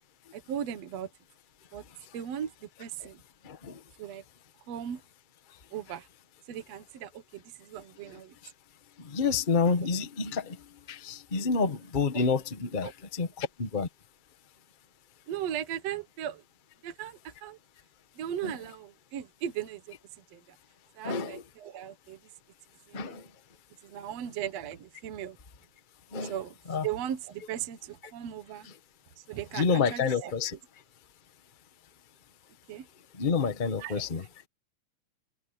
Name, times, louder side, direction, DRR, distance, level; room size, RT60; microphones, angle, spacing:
voice 1, 0.3-1.1 1.7-1.8 2.1-2.5 2.8-3.2 4.0-4.2 4.7-5.0 5.7-6.1 6.5-8.3 12.8-12.9 15.3-16.4 16.8-17.6 18.2-20.0 20.3-20.6 21.0-22.2 22.9-23.2 23.8-25.4 26.2-26.5 26.8-28.7 29.2-30.3 32.7-32.9 33.8-34.0, right 10 dB, 60° right, 2.3 m, -37 dB
voice 2, 3.4-3.8 8.1-8.5 9.0-13.9 18.4-18.6 21.0-21.4 22.9-23.3 26.1-26.3 26.7-26.9 28.6-28.7 29.5-30.6 33.1-34.2, left 5 dB, 80° left, 0.4 m, -29 dB
omnidirectional pair, 3.5 m